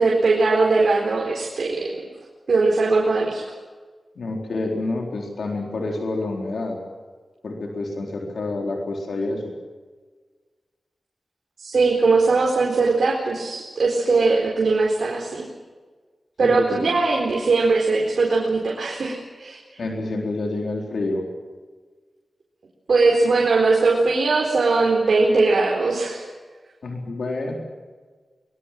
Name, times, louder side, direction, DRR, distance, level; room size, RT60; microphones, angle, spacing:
voice 1, 0.0-1.9 2.5-3.4 11.6-15.5 16.4-19.6 22.9-26.3, right 3 dB, 80° right, -1 dB, 4.2 m, -20 dB
voice 2, 4.2-6.8 7.4-9.5 16.4-16.9 19.8-21.3 26.8-27.5, left 2 dB, 85° left, 0 dB, 4.2 m, -28 dB
23.5 x 22.0 x 7.7 m, 1.4 s
wide cardioid pair, 115°, 0 cm